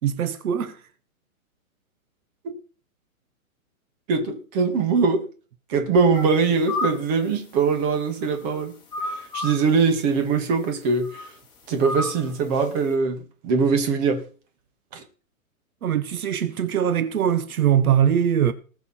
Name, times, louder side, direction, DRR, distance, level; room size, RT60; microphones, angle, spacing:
voice 1, 0.0-0.8 15.8-18.5, right 9 dB, 75° right, 1.3 m, -22 dB
voice 2, 4.1-5.2 5.7-11.3 11.7-14.2 14.9-15.0, right 5 dB, 30° right, 2.2 m, -22 dB
sound 1, 6.1-6.4 6.7-7.2 7.6-8.6 8.9-9.7 11.0-11.3 11.8-12.4, left 2 dB, 10° left, 3.1 m, -31 dB
19.5 x 6.9 x 4.4 m
hypercardioid pair, 165°, 44 cm